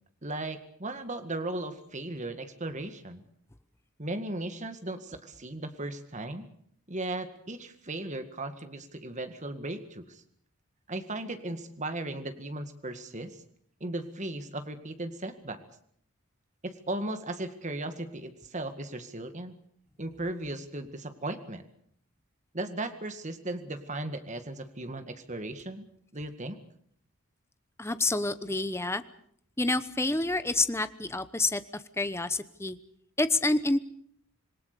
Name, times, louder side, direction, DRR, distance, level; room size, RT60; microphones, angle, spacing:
voice 1, 0.2-3.2 4.0-6.5 6.9-10.2 10.9-13.4 13.8-15.6 16.6-19.5 20.0-21.6 22.5-25.9 26.1-26.6, right 2 dB, 35° right, 8 dB, 2.0 m, -36 dB
voice 2, 27.8-29.0 29.6-32.8 33.2-33.8, left 2 dB, 10° left, 12 dB, 1.0 m, -28 dB
27.0 x 20.5 x 6.9 m, 0.66 s
head